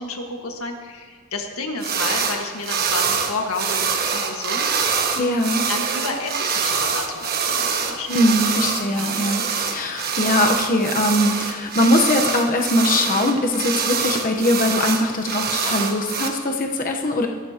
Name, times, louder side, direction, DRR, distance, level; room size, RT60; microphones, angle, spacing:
voice 1, 0.0-4.8 5.7-8.5 8.9-9.1, left 3 dB, 85° left, 2 dB, 1.7 m, -31 dB
sound 1, 1.8-2.4 2.6-16.3, right 6 dB, 45° right, 1.3 m, -24 dB
voice 2, 5.1-5.6 8.1-17.3, left 1 dB, 40° left, 2 dB, 1.0 m, -21 dB
22.0 x 13.0 x 2.9 m, 1.6 s
head